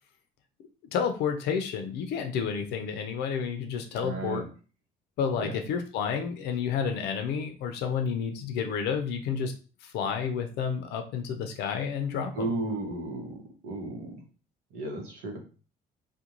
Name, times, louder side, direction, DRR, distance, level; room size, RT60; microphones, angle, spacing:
voice 1, 0.9-4.4 5.2-9.5 9.8-12.5, left 6 dB, 80° left, 6 dB, 0.5 m, -30 dB
voice 2, 4.0-4.5 5.3-5.6 12.3-13.4 13.6-14.1 14.7-15.4, right 2 dB, 90° right, 2 dB, 0.9 m, -34 dB
2.4 x 2.2 x 2.9 m, 0.36 s
cardioid pair, 110°, 17 cm